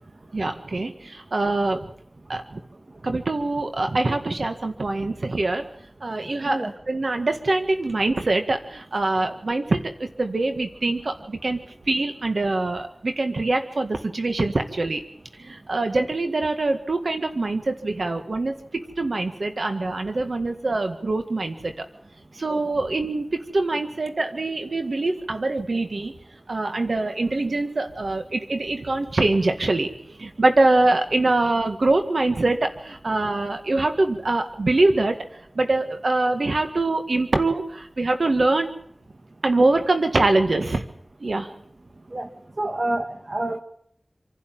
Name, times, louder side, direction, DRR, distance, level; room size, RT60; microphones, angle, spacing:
voice 1, 0.3-1.8 2.3-2.4 3.0-5.7 6.0-15.0 15.4-21.9 22.4-23.3 23.5-26.1 26.5-35.2 35.6-38.7 39.4-40.8 41.2-41.5, right 2 dB, 85° right, 6 dB, 1.8 m, -24 dB
voice 2, 42.6-43.6, right 1 dB, 60° right, 7 dB, 1.7 m, -27 dB
27.0 x 11.5 x 9.3 m, 0.68 s
wide cardioid pair, 55°, 0 cm